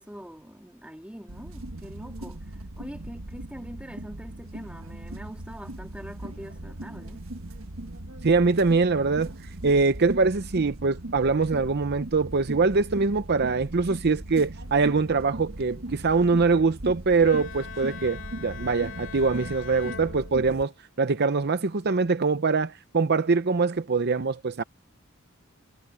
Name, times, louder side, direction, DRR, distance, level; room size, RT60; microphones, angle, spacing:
voice 1, 0.0-7.2, equal, 5° right, 3.3 m, -43 dB
sound 1, 1.3-20.6, right 1 dB, 75° right, 1.5 m, -39 dB
voice 2, 8.2-20.7 21.0-24.6, right 4 dB, 50° right, 0.7 m, -23 dB
Bowed string instrument, 17.2-20.9, left 7 dB, 70° left, 2.0 m, -42 dB
head